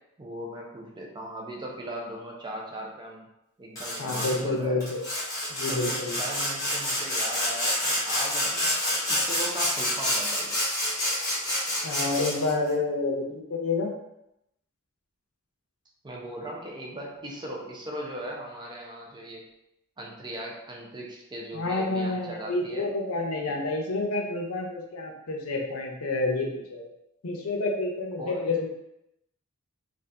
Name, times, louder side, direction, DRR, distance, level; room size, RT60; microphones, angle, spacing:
voice 1, 0.2-3.3 3.6-4.8 5.7-8.7 9.1-10.6 16.0-19.4 20.0-22.9 23.4-23.6 28.2-28.5, right 1 dB, 20° right, -1 dB, 0.5 m, -38 dB
Sawing, 3.8-4.4 4.8-12.5, left 1 dB, 15° left, 1.0 m, -28 dB
voice 2, 4.0-5.0 5.5-6.2 11.8-13.9 21.5-26.9 27.2-28.7, left 2 dB, 80° left, 0 dB, 0.6 m, -29 dB
2.7 x 2.4 x 3.3 m, 0.84 s
head